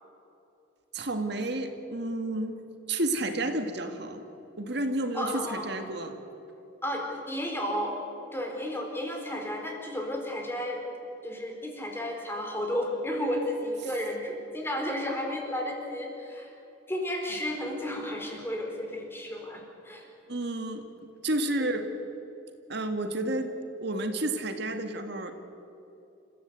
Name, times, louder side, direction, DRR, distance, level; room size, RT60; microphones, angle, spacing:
voice 1, 0.9-2.5 2.9-4.2 4.6-6.2 20.3-20.8 21.2-21.9 22.7-23.6 23.8-25.3, right 2 dB, 60° right, 6 dB, 1.9 m, -30 dB
voice 2, 5.1-5.7 6.8-8.0 8.3-10.8 11.2-16.5 16.9-20.1 21.6-21.7, left 1 dB, 10° left, 1 dB, 4.3 m, -33 dB
29.5 x 15.5 x 8.3 m, 2.9 s
head